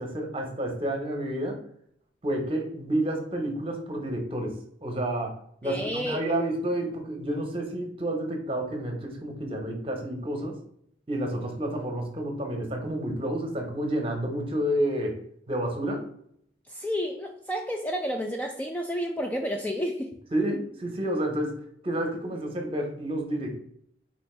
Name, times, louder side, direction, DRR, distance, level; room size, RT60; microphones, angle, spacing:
voice 1, 0.0-1.6 2.2-5.4 5.6-10.6 11.1-15.2 15.5-16.0 20.3-23.6, right 1 dB, 30° right, 3 dB, 0.9 m, -30 dB
voice 2, 5.6-6.4 16.7-20.1, equal, 10° left, 2 dB, 0.3 m, -31 dB
4.3 x 2.8 x 4.2 m, 0.69 s
head